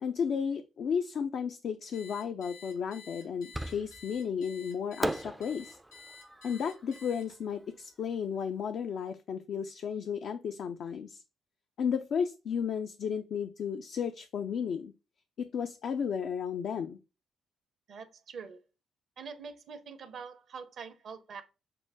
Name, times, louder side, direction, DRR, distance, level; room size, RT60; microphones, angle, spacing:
voice 1, 0.0-5.8 6.4-11.2 11.8-14.9 15.4-17.0, left 7 dB, 60° left, 0.4 m, -33 dB
Alarm, 1.9-7.6, left 3 dB, 85° left, 1.8 m, -51 dB
Fireworks, 3.5-4.2 5.0-8.1, right 1 dB, 10° right, 0.4 m, -39 dB
voice 2, 17.9-18.6 19.2-21.4, right 5 dB, 55° right, 0.6 m, -44 dB
5.8 x 2.1 x 3.4 m
hypercardioid pair, 45°, 0 cm